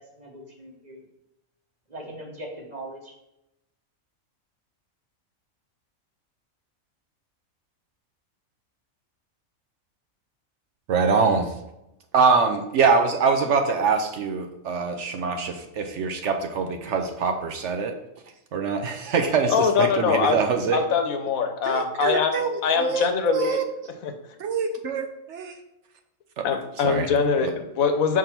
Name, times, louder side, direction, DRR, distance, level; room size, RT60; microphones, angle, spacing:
voice 1, 0.2-1.0 1.9-3.1, right 1 dB, 35° right, -1 dB, 1.3 m, -40 dB
voice 2, 10.9-11.5 12.1-18.0 18.5-20.8 21.7-23.7 24.4-25.6 26.4-26.5 26.8-27.1 27.4-27.5, right 5 dB, 65° right, 6 dB, 0.9 m, -24 dB
voice 3, 19.5-20.4 20.7-23.6 24.0-24.1 26.4-28.2, left 6 dB, 80° left, 6 dB, 1.2 m, -23 dB
5.5 x 3.7 x 5.8 m, 0.88 s
omnidirectional pair, 1.4 m